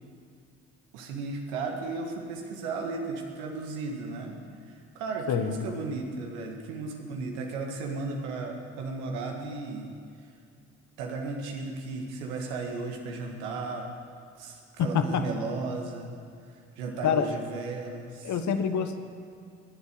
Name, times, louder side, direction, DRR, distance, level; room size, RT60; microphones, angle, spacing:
voice 1, 0.9-4.3 4.7-9.9 11.0-13.9 14.4-16.1 16.8-18.4, right 3 dB, 80° right, 2 dB, 1.9 m, -35 dB
voice 2, 5.3-5.7 14.8-15.2 17.0-17.3 18.2-19.0, left 7 dB, 55° left, 9 dB, 1.2 m, -26 dB
19.5 x 8.3 x 6.8 m, 2.3 s
hypercardioid pair, 50°, 34 cm